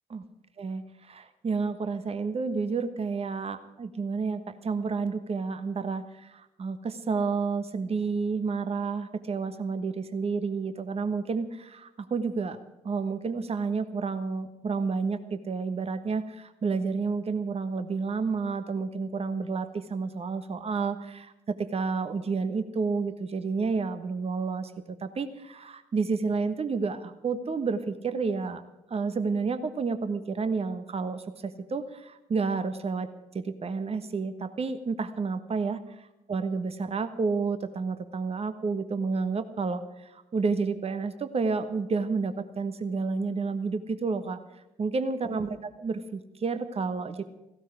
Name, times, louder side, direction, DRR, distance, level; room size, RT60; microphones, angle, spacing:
voice 1, 0.6-12.6 12.8-28.6 28.9-33.1 33.3-35.8 36.3-44.4 44.8-47.2, right 4 dB, 35° right, 11 dB, 1.4 m, -30 dB
17.5 x 16.0 x 5.0 m, 0.95 s
figure-of-eight pair, 40°, 17 cm